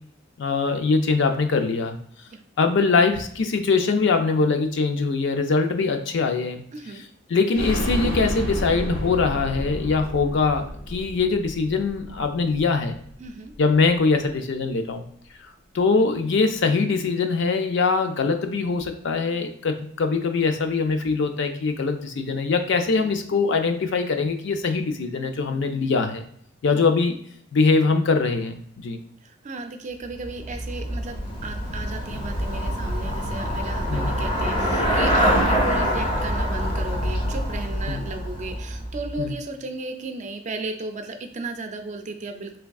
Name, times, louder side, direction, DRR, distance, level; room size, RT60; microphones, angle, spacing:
voice 1, 0.4-2.0 2.6-6.6 7.3-13.0 13.6-15.0 15.7-26.2 26.6-27.1 27.5-29.0 33.9-34.2 37.9-38.0 39.2-39.3, left 4 dB, 60° left, 6 dB, 0.4 m, -22 dB
voice 2, 6.7-7.0 13.2-13.5 26.7-26.8 29.2-42.6, right 2 dB, 35° right, 6 dB, 0.4 m, -34 dB
sound 1, 7.5-13.2 13.5-13.6 13.9-14.0, equal, 85° left, 1.2 m, -31 dB
Traffic noise roadway noise / Bicycle, 30.1-39.3, equal, 25° left, 1.0 m, -25 dB
3.4 x 3.3 x 2.3 m, 0.65 s
head